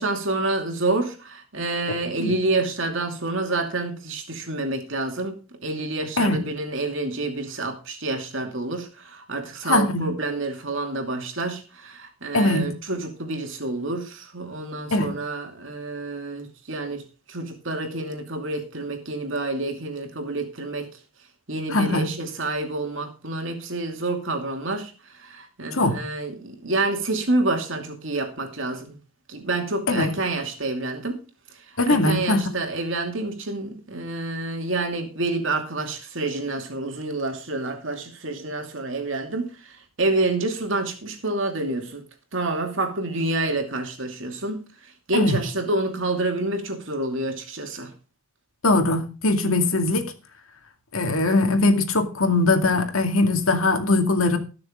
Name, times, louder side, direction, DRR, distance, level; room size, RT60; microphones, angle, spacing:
voice 1, 0.0-5.4 5.6-17.0 17.3-20.9 21.5-29.0 29.3-31.2 31.9-42.0 42.3-47.9, right 2 dB, 65° right, 2.6 m, -28 dB
voice 2, 9.7-10.1 12.3-12.7 14.9-15.1 21.7-22.1 25.7-26.0 29.9-30.1 31.8-32.5 45.1-45.4 48.6-50.1 50.9-54.4, left 2 dB, 90° left, 2.3 m, -21 dB
20.0 x 6.8 x 3.8 m
head